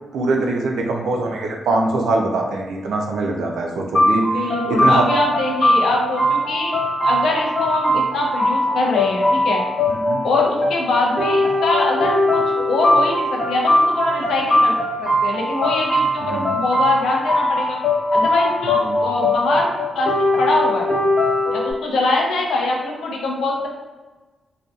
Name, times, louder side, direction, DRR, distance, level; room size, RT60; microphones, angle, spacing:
voice 1, 0.1-4.3 4.7-5.0 10.0-10.2 16.2-16.5 18.9-19.0, right 2 dB, 90° right, 1 dB, 0.3 m, -22 dB
sound 1, 3.9-21.7, left 1 dB, 45° left, 0.8 m, -20 dB
voice 2, 4.3-6.8 7.0-9.6 10.2-17.8 18.1-19.7 19.9-20.9 21.5-23.7, left 2 dB, 80° left, -1 dB, 0.5 m, -22 dB
2.6 x 2.1 x 2.3 m, 1.2 s
cardioid pair, 90°, 0 cm